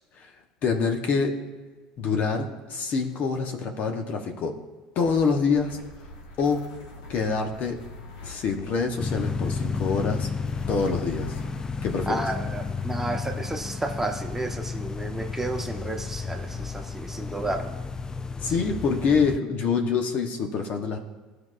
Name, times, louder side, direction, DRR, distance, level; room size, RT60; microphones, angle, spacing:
voice 1, 0.6-1.3 2.0-4.6 5.0-5.8 6.4-6.6 7.1-7.8 8.2-10.3 10.7-11.4 11.8-12.2 18.4-21.0, left 5 dB, 50° left, 3 dB, 1.0 m, -26 dB
sound 1, 5.0-13.7, left 1 dB, 80° left, 1.3 m, -44 dB
sound 2, 9.0-19.4, left 5 dB, 20° left, 0.3 m, -32 dB
voice 2, 12.1-17.7 18.4-18.8, right 2 dB, 10° right, 3 dB, 1.0 m, -32 dB
13.5 x 4.7 x 2.5 m, 1.3 s
hypercardioid pair, 80°, 3 cm